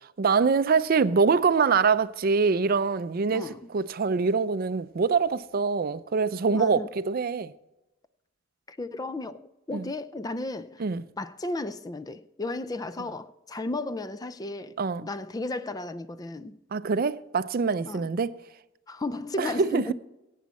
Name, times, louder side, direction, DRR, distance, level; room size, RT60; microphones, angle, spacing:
voice 1, 0.2-7.5 9.7-9.9 10.8-11.0 14.8-15.1 16.7-18.4 19.4-19.9, right 5 dB, 50° right, 0.4 m, -24 dB
voice 2, 3.3-3.6 6.5-6.9 8.7-10.8 11.2-16.6 17.8-18.1 18.9-19.9, left 2 dB, 20° left, 0.4 m, -34 dB
16.5 x 8.4 x 4.2 m
head